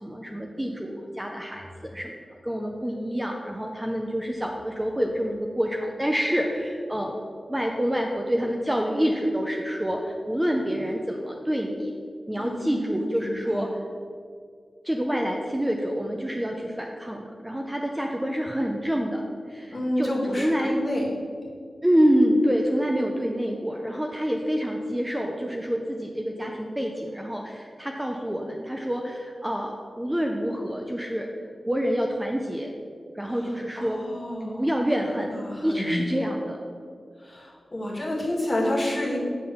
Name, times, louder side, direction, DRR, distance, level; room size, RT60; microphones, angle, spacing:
voice 1, 0.0-7.2 7.5-11.9 12.3-13.8 14.8-19.2 19.5-20.8 21.8-32.7 33.1-34.0 34.4-36.6, equal, 10° right, 1 dB, 0.6 m, -27 dB
voice 2, 12.4-13.7 19.7-21.1 33.3-34.7 35.3-36.0 37.2-39.2, left 1 dB, 30° left, -4 dB, 2.0 m, -30 dB
8.4 x 3.8 x 6.9 m, 2.2 s
wide cardioid pair, 120°, 0 cm